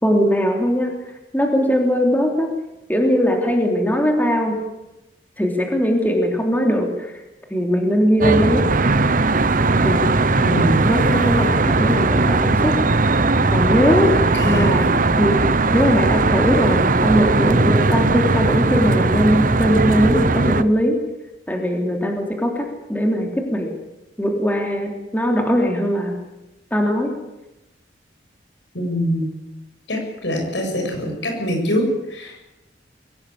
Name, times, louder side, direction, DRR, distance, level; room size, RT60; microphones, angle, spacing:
voice 1, 0.0-0.9 1.3-2.5 2.9-4.6 5.4-6.9 7.5-8.7 9.8-10.0 10.9-12.8 13.5-14.2 14.4-15.4 15.7-21.0 21.5-23.7 24.2-26.2 26.7-27.1, equal, 10° left, 1 dB, 3.5 m, -20 dB
Traffic noise roadway noise, 8.2-20.6, right 3 dB, 50° right, 1.0 m, -18 dB
voice 2, 10.3-10.8 14.3-14.7 28.7-29.3 29.9-32.5, equal, 80° left, 2 dB, 7.9 m, -24 dB
23.5 x 17.5 x 8.7 m, 0.97 s
head